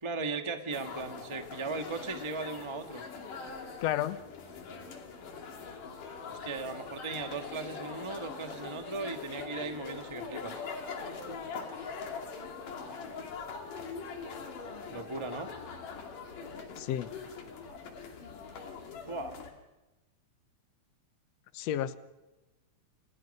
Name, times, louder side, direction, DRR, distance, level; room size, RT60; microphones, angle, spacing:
voice 1, 0.0-3.0 6.3-10.6 14.9-15.5 19.1-19.3, right 3 dB, 30° right, 6 dB, 0.5 m, -37 dB
sound 1, 0.7-19.5, left 5 dB, 85° left, 4.2 m, -42 dB
voice 2, 3.8-4.2 16.8-17.1 21.5-22.0, left 11 dB, 65° left, 13 dB, 1.9 m, -31 dB
29.0 x 27.5 x 5.5 m, 1.0 s
omnidirectional pair, 3.6 m